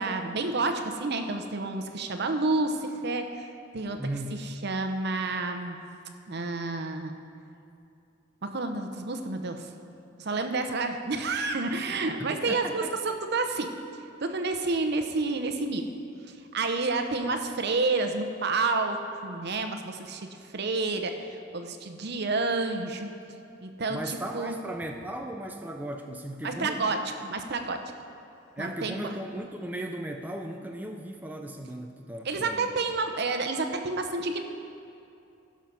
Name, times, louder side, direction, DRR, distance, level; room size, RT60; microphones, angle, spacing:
voice 1, 0.0-4.0 4.4-5.8 6.3-7.1 8.4-9.7 10.2-13.8 14.2-15.9 16.5-19.0 19.2-20.3 20.5-21.2 21.5-23.1 23.6-24.5 26.4-27.8 28.6-29.1 32.3-34.4, right 3 dB, 55° right, 6 dB, 0.8 m, -29 dB
voice 2, 4.0-4.4 12.2-12.9 23.9-27.0 28.6-32.7, right 1 dB, 10° right, 3 dB, 0.4 m, -36 dB
16.0 x 6.4 x 5.4 m, 2.7 s
head